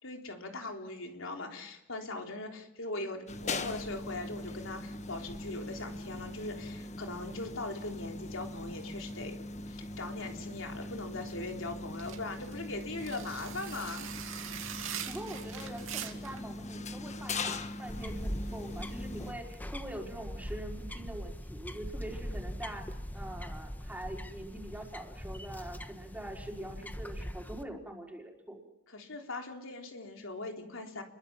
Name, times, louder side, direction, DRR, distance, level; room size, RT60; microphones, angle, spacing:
voice 1, 0.0-9.4 9.7-14.1 28.9-31.0, left 2 dB, 80° left, 3 dB, 3.6 m, -40 dB
sound 1, 3.3-19.3, left 2 dB, 35° left, 1.5 m, -41 dB
sound 2, 11.9-16.4, right 9 dB, 80° right, 2.7 m, -42 dB
voice 2, 15.1-22.8 23.1-28.6, right 1 dB, 10° right, 1 dB, 4.7 m, -44 dB
sound 3, 17.9-27.6, equal, 10° left, 1.2 m, -41 dB
30.0 x 22.5 x 7.4 m, 0.92 s
head